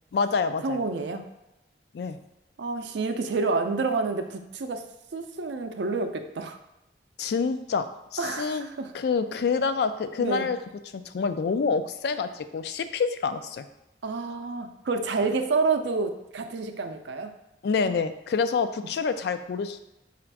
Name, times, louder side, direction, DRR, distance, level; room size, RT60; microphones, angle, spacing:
voice 1, 0.1-0.8 1.9-2.2 7.2-8.7 8.9-10.6 10.9-13.7 17.6-19.8, left 5 dB, 60° left, 10 dB, 0.3 m, -27 dB
voice 2, 0.6-1.2 2.6-4.9 5.1-6.6 8.2-8.9 10.2-10.5 14.0-17.3, right 4 dB, 75° right, 7 dB, 0.4 m, -28 dB
4.1 x 2.5 x 4.5 m, 0.94 s
head